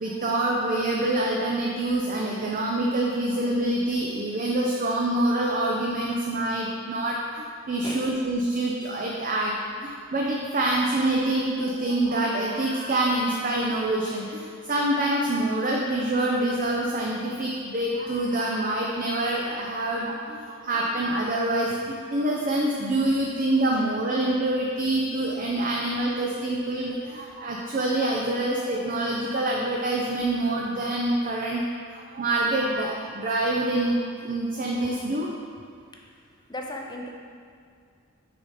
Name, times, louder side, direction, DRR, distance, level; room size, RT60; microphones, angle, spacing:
voice 1, 0.0-31.6 31.9-35.3, right 1 dB, 40° right, -2 dB, 0.6 m, -26 dB
voice 2, 7.8-8.2 23.7-23.8 36.5-37.1, left 1 dB, 20° left, 1 dB, 0.6 m, -36 dB
6.6 x 4.1 x 4.9 m, 2.1 s
head